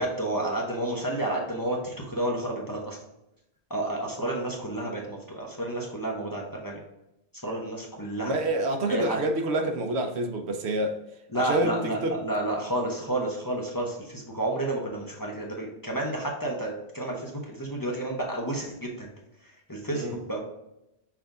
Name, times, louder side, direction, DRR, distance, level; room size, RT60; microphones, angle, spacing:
voice 1, 0.0-3.0 3.7-6.8 7.4-8.4 8.9-9.2 11.3-19.1 19.4-20.4, right 1 dB, 20° left, 0.8 m, -31 dB
voice 2, 8.2-11.0 11.3-12.2 19.9-20.2, right 1 dB, 80° right, 0.9 m, -27 dB
5.9 x 2.6 x 3.4 m
omnidirectional pair, 1.1 m